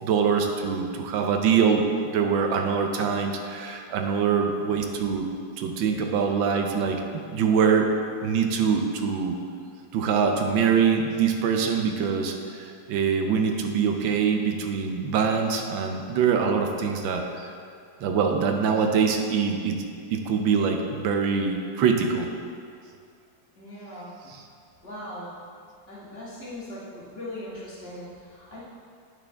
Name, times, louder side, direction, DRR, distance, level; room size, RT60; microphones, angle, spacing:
voice 1, 0.0-1.8 2.1-5.3 5.6-7.9 8.2-9.4 9.9-17.5 18.0-19.8 20.1-22.3 24.3-24.4, right 6 dB, 80° right, 3 dB, 1.4 m, -24 dB
voice 2, 23.6-24.1 24.8-25.3 25.9-28.6, left 1 dB, 30° left, -9 dB, 2.0 m, -39 dB
9.1 x 6.0 x 3.5 m, 2.3 s
omnidirectional pair, 2.1 m